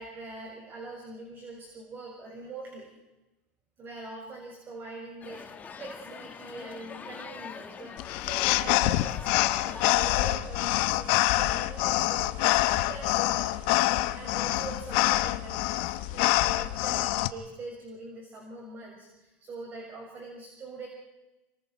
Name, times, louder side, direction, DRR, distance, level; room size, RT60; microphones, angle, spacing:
voice 1, 0.0-2.9 3.8-13.6 14.1-20.9, right 2 dB, 35° right, -1 dB, 6.4 m, -43 dB
sound 1, 5.2-10.4, left 6 dB, 25° left, 1.8 m, -43 dB
sound 2, 8.0-17.3, left 17 dB, 65° left, 1.0 m, -26 dB
27.5 x 25.0 x 4.6 m, 1.0 s
supercardioid pair, 115°, 6 cm